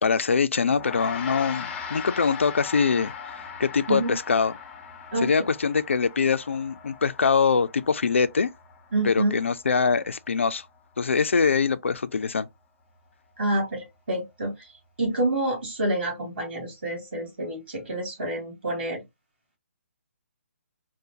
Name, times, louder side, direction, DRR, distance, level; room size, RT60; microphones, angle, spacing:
voice 1, 0.0-4.5 5.2-8.5 9.0-10.7 11.0-12.5, left 5 dB, 60° left, 0.3 m, -23 dB
Gong, 0.7-10.2, left 7 dB, 15° left, 0.6 m, -39 dB
voice 2, 8.9-9.4 13.4-14.5 15.0-19.0, right 1 dB, 45° right, 2.5 m, -27 dB
4.8 x 2.1 x 2.7 m
figure-of-eight pair, 135°, 7 cm